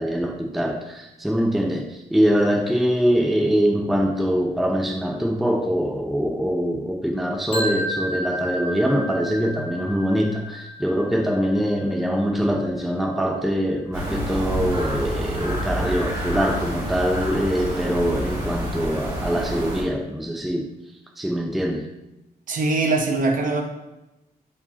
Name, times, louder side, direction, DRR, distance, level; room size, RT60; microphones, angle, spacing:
voice 1, 0.0-20.7 21.2-21.9, equal, ahead, 2 dB, 0.5 m, -23 dB
sound 1, 7.5-13.4, right 1 dB, 35° left, 1.3 m, -33 dB
sound 2, 13.9-19.8, equal, 25° right, 2.0 m, -28 dB
voice 2, 22.5-23.6, right 3 dB, 55° right, 3 dB, 0.8 m, -22 dB
7.0 x 4.8 x 2.8 m, 0.96 s
wide cardioid pair, 165°, 16 cm